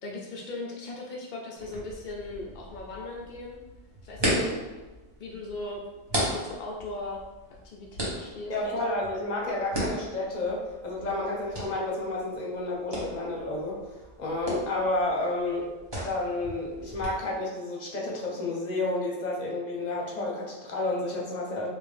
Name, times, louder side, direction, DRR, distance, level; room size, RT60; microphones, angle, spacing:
voice 1, 0.0-3.6 4.0-4.6 5.2-5.8 6.1-7.2 7.6-8.8 11.3-11.5, left 2 dB, 70° left, -2 dB, 0.4 m, -38 dB
sound 1, 1.6-17.1, equal, 25° right, 0.9 m, -36 dB
voice 2, 4.2-4.6 8.5-13.8 14.2-15.7 16.0-21.7, left 2 dB, 40° left, -2 dB, 0.7 m, -31 dB
3.7 x 2.5 x 3.3 m, 1.1 s
omnidirectional pair, 1.3 m